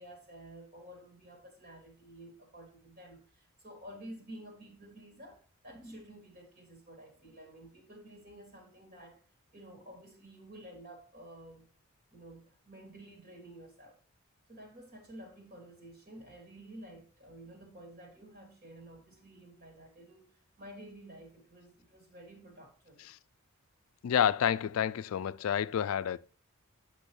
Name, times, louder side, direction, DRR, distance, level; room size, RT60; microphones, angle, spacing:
voice 1, 0.0-9.2 9.5-11.7 12.1-14.0 14.5-20.3 20.6-23.0, right 1 dB, 45° right, 3.1 m, -51 dB
voice 2, 24.0-26.2, left 9 dB, 70° left, 0.3 m, -29 dB
8.4 x 6.2 x 3.2 m
head